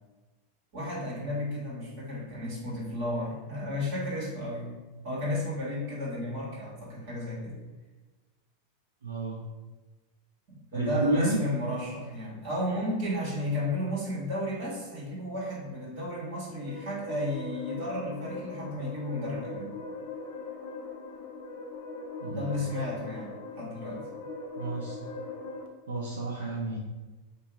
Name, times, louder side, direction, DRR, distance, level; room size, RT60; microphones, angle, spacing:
voice 1, 0.7-4.8 5.0-7.6 10.5-19.7 22.3-24.2, left 1 dB, 65° right, -7 dB, 1.4 m, -33 dB
voice 2, 9.0-9.4 10.7-11.4 22.2-22.6 24.6-25.0 25.9-26.8, right 2 dB, 90° right, -4 dB, 0.5 m, -30 dB
sound 1, 16.4-25.7, left 3 dB, 65° left, 0.4 m, -40 dB
2.8 x 2.5 x 3.5 m, 1.2 s
hypercardioid pair, 100°, 0 cm